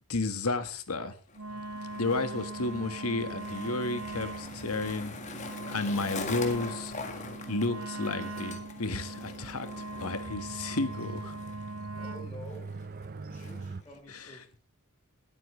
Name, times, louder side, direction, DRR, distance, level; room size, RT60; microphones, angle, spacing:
voice 1, 0.1-1.2 2.0-5.1 5.7-6.9 7.5-9.7 10.0-11.3, left 2 dB, 90° left, 10 dB, 1.7 m, -32 dB
Skateboard, 1.3-14.0, left 3 dB, 35° left, 1.8 m, -44 dB
Wind instrument woodwind instrument, 1.3-12.4, right 2 dB, 85° right, 1.1 m, -41 dB
sound 1, 1.5-13.8, right 3 dB, 40° right, 0.6 m, -46 dB
voice 2, 11.9-12.8 13.3-14.6, equal, 20° left, -4 dB, 4.1 m, -49 dB
19.5 x 9.2 x 3.3 m, 0.35 s
head